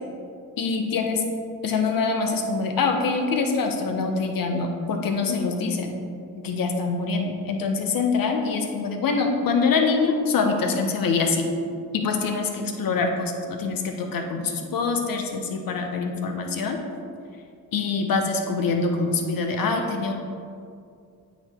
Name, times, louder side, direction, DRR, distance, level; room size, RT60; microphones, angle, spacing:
voice 1, 0.6-1.2 1.6-5.9 6.4-11.5 11.9-16.8 17.7-20.1, left 4 dB, 55° left, 4 dB, 1.0 m, -24 dB
8.7 x 3.0 x 4.4 m, 2.4 s
hypercardioid pair, 50°, 41 cm